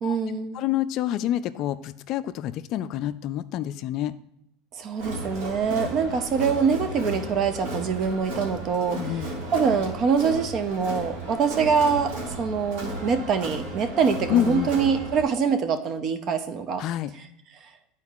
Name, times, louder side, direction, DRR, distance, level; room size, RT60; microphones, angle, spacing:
voice 1, 0.0-0.6 4.8-9.0 9.5-16.8, right 6 dB, 40° right, 9 dB, 0.6 m, -24 dB
voice 2, 0.5-4.1 8.9-9.3 14.3-14.7 16.8-17.1, left 12 dB, 50° left, 13 dB, 0.3 m, -27 dB
Crowd, 5.0-15.2, right 1 dB, 80° right, 1.9 m, -34 dB
11.0 x 4.4 x 2.4 m, 0.75 s
supercardioid pair, 140°, 0 cm